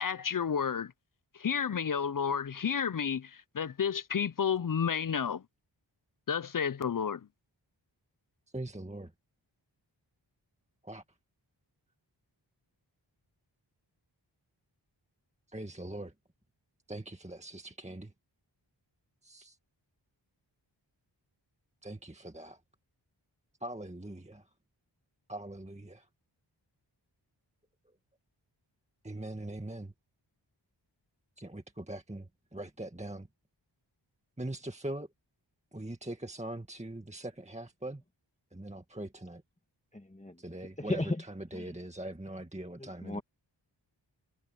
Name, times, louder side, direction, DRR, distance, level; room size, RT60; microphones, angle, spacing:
voice 1, 0.0-0.9 1.4-5.4 6.3-7.2, left 7 dB, 45° left, 0.5 m, -31 dB
voice 2, 8.5-9.1 10.8-11.0 15.5-16.1 16.9-18.1 19.2-19.6 21.8-22.6 23.6-24.5 25.3-26.1 27.9-28.0 29.0-29.9 31.4-33.3 34.4-35.1 35.7-38.0 38.5-39.4 40.4-43.2, right 1 dB, 15° right, 1.9 m, -42 dB
voice 3, 39.9-40.4 40.8-41.2 41.5-41.7 42.8-43.2, left 2 dB, 15° left, 1.5 m, -35 dB
wide cardioid pair, 40°, 46 cm